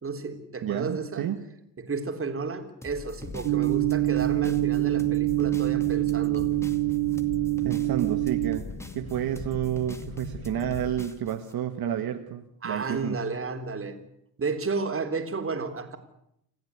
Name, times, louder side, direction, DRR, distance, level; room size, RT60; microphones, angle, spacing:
voice 1, 0.0-1.3 1.8-6.5 12.6-14.0 14.4-16.0, right 4 dB, 30° right, 6 dB, 3.6 m, -32 dB
voice 2, 0.6-1.4 7.6-8.7 8.9-13.2, right 10 dB, 60° right, 6 dB, 1.7 m, -30 dB
sound 1, 2.8-11.5, left 1 dB, 5° left, 2.2 m, -44 dB
sound 2, 3.2-10.9, left 5 dB, 40° left, 2.1 m, -41 dB
sound 3, 3.4-8.6, right 23 dB, 85° right, 1.1 m, -25 dB
28.0 x 15.0 x 9.6 m, 0.77 s
cardioid pair, 115°, 40 cm